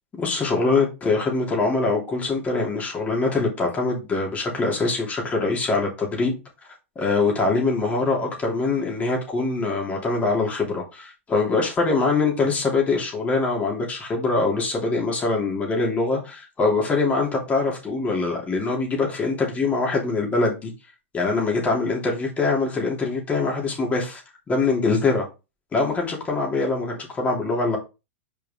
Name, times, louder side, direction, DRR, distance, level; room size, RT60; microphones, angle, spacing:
voice 1, 0.2-6.4 6.9-20.7 21.1-24.2 24.5-25.3 25.7-27.8, left 3 dB, 20° left, 3.1 m, -23 dB
5.6 x 5.1 x 3.7 m
hypercardioid pair, 115°, 7 cm